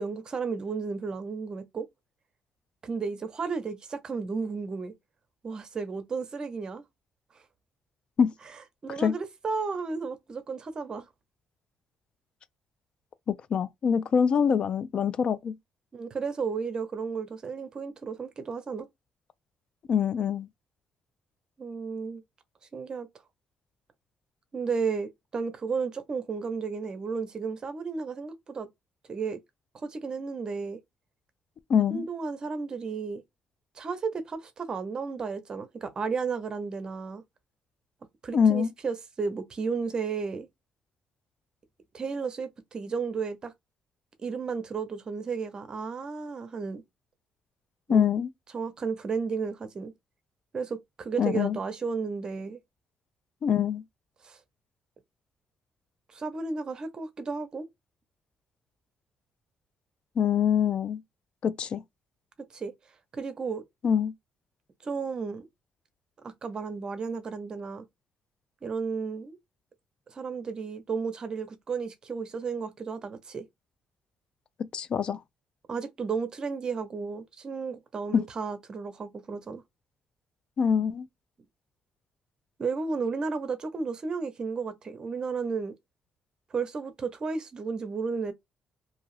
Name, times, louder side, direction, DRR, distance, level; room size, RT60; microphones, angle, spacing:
voice 1, 0.0-1.9 2.8-4.9 5.4-6.8 8.8-11.1 15.9-18.9 21.6-22.2 22.7-23.1 24.5-28.7 29.1-29.4 29.8-30.8 31.9-33.2 33.8-37.2 38.2-40.5 41.9-43.5 44.2-46.8 47.9-48.0 48.5-49.9 50.5-52.6 54.2-54.4 56.1-57.7 62.5-62.7 63.1-63.6 64.8-65.5 66.2-67.9 68.6-69.4 70.1-73.4 75.7-79.6 82.6-85.7 86.5-88.3, right 5 dB, 40° right, 0.7 m, -33 dB
voice 2, 13.3-15.5 19.9-20.5 31.7-32.1 38.3-38.7 47.9-48.3 51.2-51.6 53.4-53.8 60.2-61.0 61.4-61.8 63.8-64.1 74.7-75.2 78.1-78.3 80.6-81.1, left 7 dB, 55° left, 0.3 m, -24 dB
2.7 x 2.3 x 3.2 m
cardioid pair, 95°, 2 cm